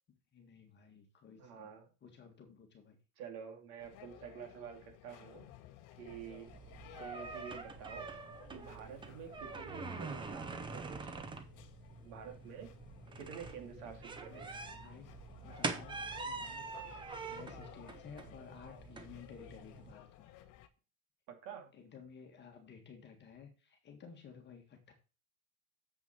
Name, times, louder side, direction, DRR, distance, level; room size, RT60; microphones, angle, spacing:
voice 1, 0.3-1.8 2.0-3.0 9.4-9.5 14.3-15.2 15.4-16.0 16.2-16.9 17.3-20.3 21.7-24.9, left 6 dB, 25° left, 4 dB, 1.8 m, -55 dB
voice 2, 1.4-1.9 3.2-5.5 6.0-6.5 7.0-8.1 8.5-11.3 12.0-12.7 13.2-14.7 21.3-21.7, right 7 dB, 55° right, 4 dB, 2.7 m, -49 dB
sound 1, 3.8-20.7, left 12 dB, 45° left, 1.1 m, -57 dB
sound 2, 6.1-19.9, right 4 dB, 10° right, 0.6 m, -45 dB
7.5 x 6.2 x 5.6 m, 0.34 s
supercardioid pair, 155°, 44 cm